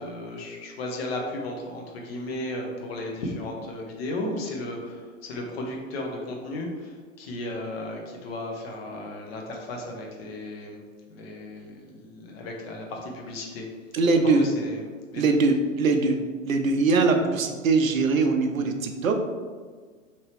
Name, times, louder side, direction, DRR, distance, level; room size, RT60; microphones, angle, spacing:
voice 1, 0.0-10.8 11.1-13.7 14.2-14.8 15.1-15.4, left 1 dB, 50° left, 0 dB, 0.8 m, -35 dB
voice 2, 13.9-14.5 15.2-16.2 16.4-19.2, right 3 dB, 80° right, 5 dB, 0.6 m, -22 dB
2.9 x 2.8 x 3.2 m, 1.5 s
figure-of-eight pair, 105°, 40 cm